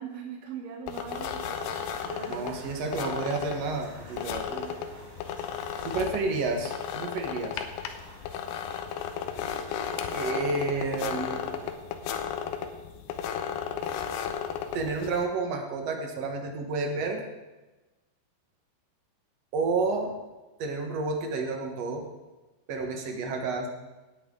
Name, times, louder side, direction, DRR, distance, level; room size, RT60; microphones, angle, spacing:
voice 1, 0.0-1.7 2.0-2.5 2.8-3.0, right 6 dB, 75° right, 1 dB, 1.5 m, -40 dB
sound 1, 0.9-15.3, left 8 dB, 80° left, 2.8 m, -34 dB
sound 2, 1.3-11.7, right 1 dB, 30° right, 6.0 m, -51 dB
voice 2, 2.3-4.7 5.8-7.5 10.1-11.4 14.7-17.2 19.5-20.1 20.6-22.0 22.7-23.7, right 3 dB, 55° right, 2 dB, 1.9 m, -30 dB
17.5 x 9.5 x 3.9 m, 1.1 s
omnidirectional pair, 4.7 m